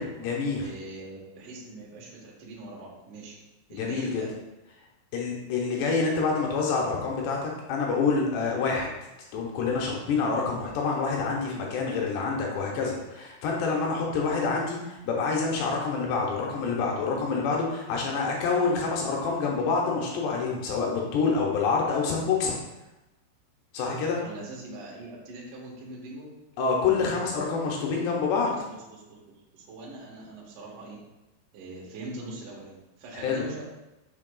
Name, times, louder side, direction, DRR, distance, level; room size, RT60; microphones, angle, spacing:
voice 1, 0.0-0.7 3.7-4.2 5.1-8.9 9.3-22.6 23.7-24.2 26.6-28.5 33.2-33.5, left 4 dB, 80° left, -1 dB, 2.6 m, -27 dB
voice 2, 0.6-3.4 3.7-4.3 24.2-26.3 28.3-29.2 29.5-31.0 31.5-33.6, right 2 dB, 70° right, -4 dB, 2.0 m, -42 dB
6.6 x 6.3 x 2.3 m, 0.99 s
omnidirectional pair, 5.5 m